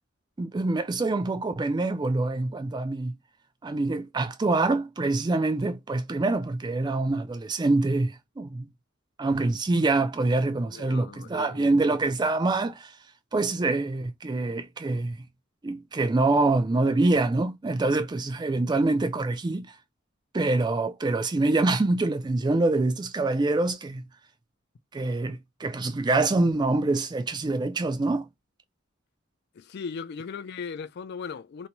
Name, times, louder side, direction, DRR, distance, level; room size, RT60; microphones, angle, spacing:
voice 1, 0.4-3.1 3.6-8.7 9.2-12.9 13.3-15.2 15.6-19.7 20.3-24.0 24.9-28.3, right 2 dB, 20° right, 0.3 m, -25 dB
voice 2, 10.7-11.7 16.8-17.1 29.5-31.7, left 5 dB, 55° left, 0.3 m, -38 dB
2.7 x 2.2 x 2.9 m
head